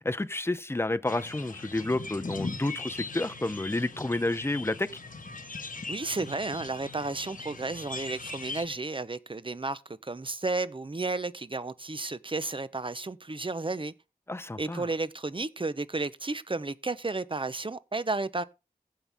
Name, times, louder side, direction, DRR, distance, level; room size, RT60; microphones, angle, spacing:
voice 1, 0.0-4.9 14.3-14.9, left 2 dB, 15° left, 0.7 m, -30 dB
sound 1, 1.1-8.7, left 3 dB, 60° left, 1.3 m, -40 dB
voice 2, 5.9-13.9 14.6-18.4, right 3 dB, 35° right, 0.8 m, -32 dB
15.5 x 5.6 x 3.5 m
wide cardioid pair, 50°, 16 cm